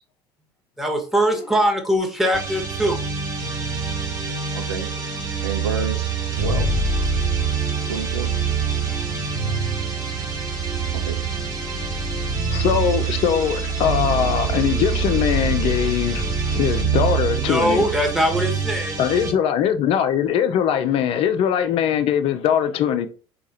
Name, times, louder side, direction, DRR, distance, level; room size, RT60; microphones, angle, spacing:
voice 1, 0.8-3.0 17.4-19.0, equal, ahead, 1.3 m, -21 dB
sound 1, 2.3-19.3, right 5 dB, 30° right, 1.5 m, -25 dB
voice 2, 4.5-4.9 5.4-6.1 6.4-6.7 7.9-8.3 10.9-11.2, right 5 dB, 75° right, 0.7 m, -29 dB
voice 3, 12.5-16.2 16.5-17.8 19.0-23.1, left 9 dB, 45° left, 0.7 m, -21 dB
4.7 x 2.5 x 4.1 m
figure-of-eight pair, 60°, 13 cm